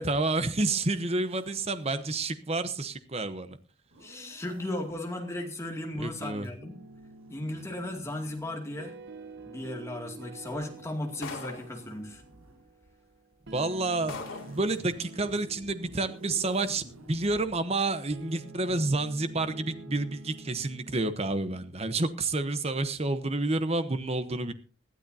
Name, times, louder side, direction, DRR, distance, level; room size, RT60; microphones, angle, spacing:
voice 1, 0.0-3.6 6.0-6.5 13.5-24.5, right 2 dB, 30° right, 11 dB, 0.9 m, -29 dB
Zipper (clothing), 0.8-2.2 3.8-4.9 6.4-9.6 10.4-12.6 13.6-17.6, right 1 dB, 85° right, 6.6 m, -55 dB
voice 2, 4.0-6.8 7.3-9.0 9.4-12.2, left 1 dB, 15° left, 2 dB, 2.3 m, -36 dB
sound 1, 6.6-21.7, right 2 dB, 55° right, 1.6 m, -48 dB
sound 2, 11.2-11.8 12.8-12.9 13.5-13.6 14.1-14.6, left 4 dB, 85° left, 2.6 m, -40 dB
20.5 x 13.0 x 2.7 m, 0.37 s
head